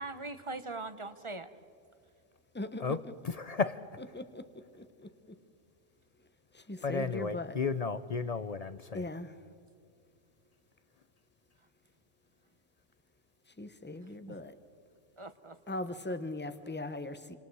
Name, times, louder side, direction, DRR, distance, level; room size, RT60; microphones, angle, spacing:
voice 1, 0.0-1.5 14.3-14.4 15.2-15.7, right 3 dB, 30° right, 11 dB, 0.9 m, -41 dB
voice 2, 2.5-3.0 4.1-5.4 6.2-6.3 6.5-7.6 8.9-9.3 13.5-14.6 15.7-17.4, left 2 dB, 10° left, 10 dB, 0.9 m, -40 dB
voice 3, 3.2-3.9 6.8-9.1, left 5 dB, 45° left, 14 dB, 0.5 m, -33 dB
28.5 x 26.0 x 4.7 m, 2.4 s
omnidirectional pair, 1.3 m